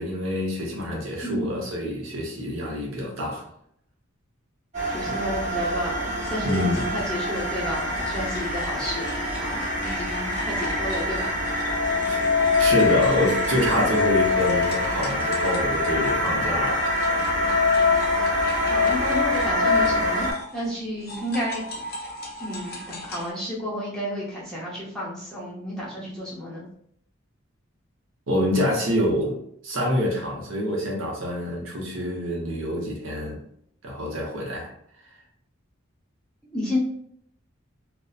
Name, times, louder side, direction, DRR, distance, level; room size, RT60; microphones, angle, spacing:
voice 1, 0.0-3.4 6.4-6.9 12.1-12.2 12.6-17.1 28.3-33.4 33.8-34.7, equal, 65° right, -1 dB, 0.7 m, -26 dB
voice 2, 1.2-1.7 4.8-9.1 9.4-11.4 16.3-16.4 18.7-20.3 20.5-21.6 22.4-26.6 36.5-36.8, equal, 5° left, -8 dB, 0.7 m, -31 dB
sound 1, 4.7-20.3, left 2 dB, 30° right, 0.9 m, -24 dB
sound 2, 6.1-16.4 16.6-23.3, left 1 dB, 45° left, 0.5 m, -39 dB
2.6 x 2.1 x 2.3 m, 0.68 s
head